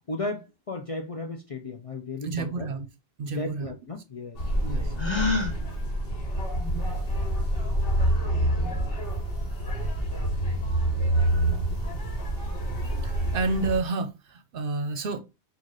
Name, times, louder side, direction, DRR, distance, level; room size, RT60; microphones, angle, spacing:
voice 1, 0.0-2.7 3.3-4.4, left 2 dB, 45° left, 0.5 m, -35 dB
voice 2, 2.2-2.9 3.2-3.7 4.6-4.9 9.7-9.9 12.9-15.2, right 3 dB, 60° right, 0.8 m, -30 dB
sound 1, 4.4-13.8, right 1 dB, 60° left, 1.5 m, -27 dB
Gasp, 5.0-5.5, left 3 dB, 25° left, 1.4 m, -25 dB
4.0 x 2.5 x 4.7 m
omnidirectional pair, 1.1 m